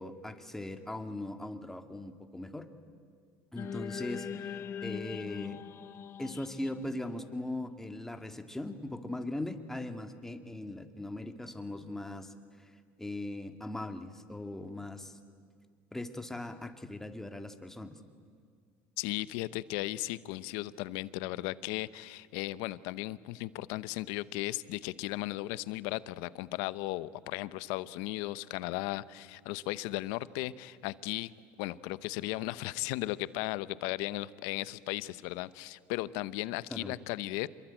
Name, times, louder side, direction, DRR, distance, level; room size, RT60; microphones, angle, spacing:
voice 1, 0.0-2.7 3.5-5.6 6.2-15.2 15.9-18.0 36.7-37.0, left 1 dB, 5° left, 7 dB, 2.1 m, -40 dB
sound 1, 3.6-7.9, left 8 dB, 45° left, 1.0 m, -41 dB
voice 2, 19.0-31.3 31.6-37.5, left 17 dB, 80° left, 17 dB, 0.8 m, -36 dB
27.0 x 22.5 x 9.0 m, 2.1 s
supercardioid pair, 105°, 6 cm